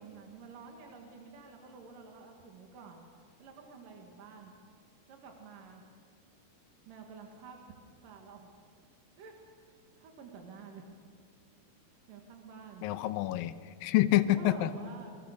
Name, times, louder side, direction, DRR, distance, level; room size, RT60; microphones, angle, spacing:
voice 1, 0.0-3.1 3.4-4.5 5.1-5.8 6.9-7.8 8.0-8.5 9.2-10.8 11.9-12.9 13.8-15.1, right 5 dB, 70° right, 2 dB, 3.6 m, -50 dB
voice 2, 12.8-14.7, left 14 dB, 80° left, 11 dB, 2.5 m, -27 dB
28.0 x 23.0 x 6.7 m, 2.1 s
omnidirectional pair, 4.1 m